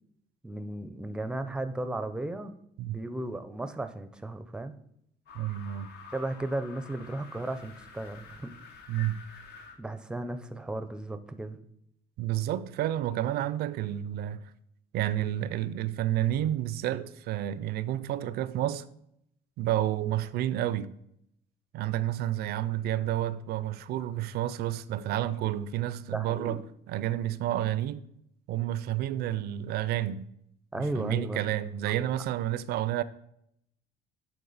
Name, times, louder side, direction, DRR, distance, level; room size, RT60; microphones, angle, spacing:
voice 1, 0.4-2.5 2.8-4.8 6.1-8.5 9.8-11.6 26.1-26.6 30.7-31.6, right 2 dB, 5° right, 0.4 m, -35 dB
sound 1, 5.3-9.8, left 5 dB, 75° left, 0.9 m, -49 dB
voice 2, 5.3-5.9 8.9-9.2 12.2-14.5 14.9-18.9 19.6-20.9 21.7-26.6 26.9-28.0 28.5-30.3 30.7-33.0, right 12 dB, 70° right, 0.4 m, -30 dB
8.6 x 3.6 x 4.0 m
cardioid pair, 110°, 17 cm